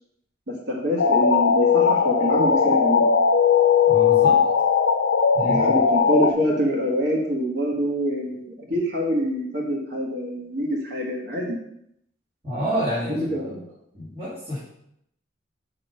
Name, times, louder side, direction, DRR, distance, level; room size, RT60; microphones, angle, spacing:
voice 1, 0.5-3.1 5.4-11.6 13.1-13.6, equal, 60° right, -2 dB, 1.7 m, -25 dB
sound 1, 1.0-6.3, left 6 dB, 90° left, 0.6 m, -18 dB
voice 2, 3.9-4.4 5.3-5.8 12.4-13.4 13.9-14.6, equal, 30° right, -12 dB, 2.8 m, -28 dB
5.9 x 5.3 x 5.6 m, 0.76 s
head